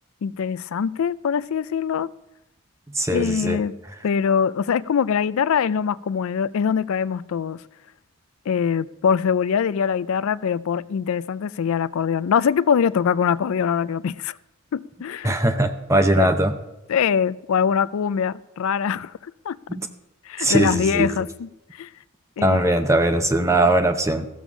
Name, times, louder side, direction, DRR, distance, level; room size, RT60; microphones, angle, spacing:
voice 1, 0.2-2.1 3.1-3.8 4.0-7.6 8.5-14.4 14.7-15.4 16.2-16.3 16.9-19.1 19.5-19.6 20.3-21.5 21.8-21.9 22.4-22.7, left 7 dB, 70° left, 0.4 m, -23 dB
voice 2, 2.9-3.6 15.2-16.5 19.7-19.9 20.4-21.1 22.4-24.3, right 1 dB, 15° right, 0.7 m, -20 dB
15.0 x 7.0 x 6.1 m
head